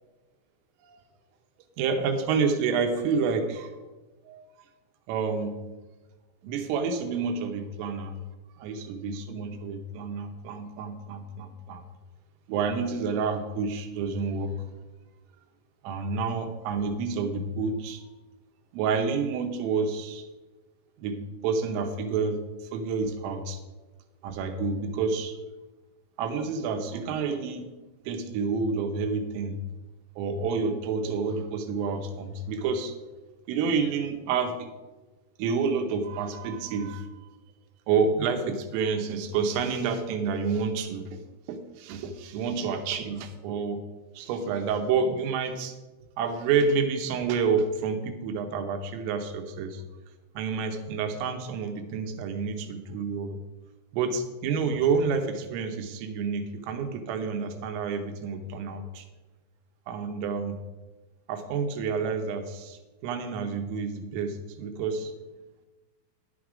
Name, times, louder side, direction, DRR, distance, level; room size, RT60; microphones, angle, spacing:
voice 1, 1.8-3.8 4.3-4.5 5.1-5.6 6.4-8.2 8.6-11.8 12.5-14.6 15.8-18.0 18.7-20.3 21.0-22.4 22.7-23.6 24.2-25.3 26.2-27.7 28.1-29.6 30.2-33.0 33.5-34.7 35.4-37.1 37.9-41.2 41.5-43.9 44.2-45.8 46.2-49.8 50.4-53.4 53.9-59.1 59.9-60.6 61.3-65.1, right 5 dB, 90° right, 6 dB, 3.6 m, -29 dB
10.5 x 7.8 x 5.0 m, 1.2 s
omnidirectional pair, 5.7 m